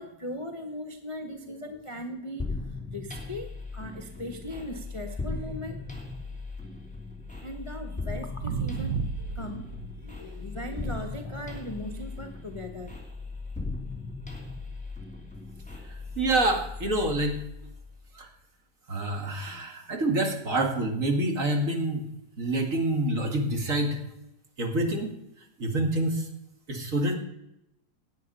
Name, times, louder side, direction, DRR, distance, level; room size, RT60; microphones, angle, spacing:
voice 1, 0.0-5.9 7.4-12.9, left 1 dB, 20° left, 5 dB, 0.9 m, -39 dB
sound 1, 2.4-18.0, left 3 dB, 5° left, 3.2 m, -38 dB
sound 2, 8.4-10.0 10.8-11.0 16.9-17.0, right 7 dB, 75° right, 1.5 m, -33 dB
voice 2, 15.9-17.4 18.1-18.3 18.9-22.1 22.4-24.0 24.6-25.1 25.6-26.3 26.7-27.1, right 1 dB, 45° right, 3 dB, 2.5 m, -27 dB
17.0 x 9.7 x 5.5 m, 0.84 s
omnidirectional pair, 2.1 m